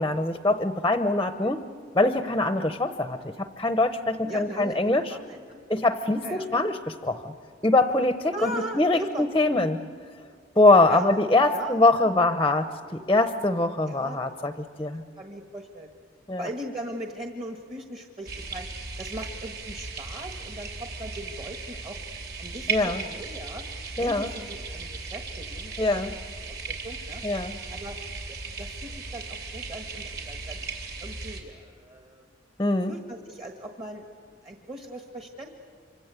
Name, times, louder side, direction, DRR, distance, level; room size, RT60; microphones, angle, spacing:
voice 1, 0.0-1.6 1.9-5.0 5.7-7.3 7.6-9.8 10.6-14.5 14.8-15.0 16.3-16.5 22.7-23.0 24.0-24.3 25.8-26.1 27.2-27.5 32.6-32.9, left 2 dB, 15° left, 9 dB, 0.7 m, -23 dB
voice 2, 4.2-5.6 6.2-6.5 8.3-9.3 10.9-11.2 11.5-12.1 13.8-14.2 15.2-15.9 16.4-18.7 19.0-22.0 22.4-23.6 24.0-26.1 26.5-27.2 27.7-28.0 28.3-30.7 31.0-32.2 32.8-35.6, right 1 dB, 25° right, 4 dB, 1.4 m, -39 dB
sound 1, 18.3-31.4, right 4 dB, 50° right, 3.5 m, -36 dB
26.5 x 25.0 x 8.2 m, 2.2 s
head